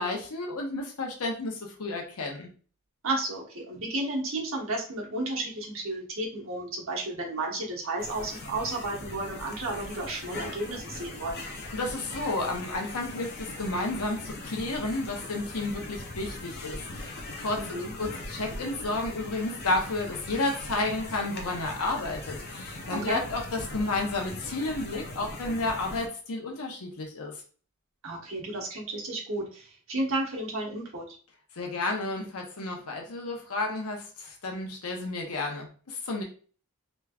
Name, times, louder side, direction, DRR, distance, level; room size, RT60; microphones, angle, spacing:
voice 1, 0.0-2.5 11.7-27.3 31.5-36.2, left 2 dB, 85° left, 1 dB, 0.8 m, -32 dB
voice 2, 3.0-11.4 17.6-17.9 23.0-23.2 28.0-31.1, right 2 dB, 65° right, -2 dB, 1.2 m, -32 dB
sound 1, 8.0-26.1, left 2 dB, 45° left, 0.6 m, -40 dB
3.3 x 3.1 x 2.3 m, 0.41 s
head